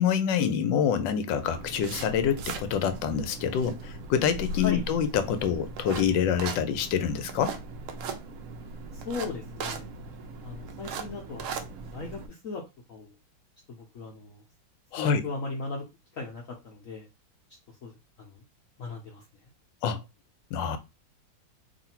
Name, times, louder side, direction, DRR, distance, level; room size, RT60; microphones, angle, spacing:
voice 1, 0.0-7.6 14.9-15.2 19.8-20.0 20.5-20.8, left 8 dB, 85° left, 1.3 m, -26 dB
sound 1, 1.4-12.3, right 4 dB, 75° right, 0.7 m, -39 dB
voice 2, 8.9-9.9 10.4-12.6 12.9-13.2 13.7-14.4 15.0-15.8 16.1-17.1 17.7-18.4 18.8-19.5, left 4 dB, 60° left, 1.0 m, -38 dB
3.1 x 2.6 x 4.2 m
omnidirectional pair, 2.0 m